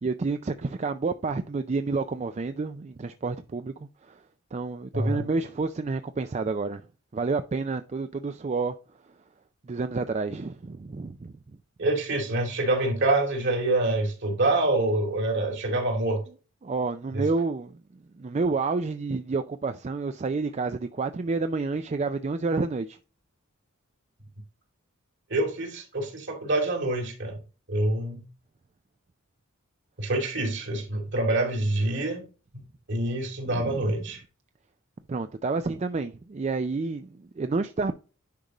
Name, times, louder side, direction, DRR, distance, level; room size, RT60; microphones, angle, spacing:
voice 1, 0.0-4.2 4.5-6.8 7.1-8.7 9.7-11.3 16.6-17.8 18.1-23.0 33.5-33.9 35.1-37.9, right 3 dB, 30° right, 0.4 m, -29 dB
voice 2, 4.9-5.3 11.8-16.2 17.1-17.2 25.3-27.4 27.7-28.2 30.0-32.3 32.5-32.6 32.9-34.2, right 2 dB, 55° right, 2.6 m, -26 dB
10.5 x 5.2 x 3.0 m
head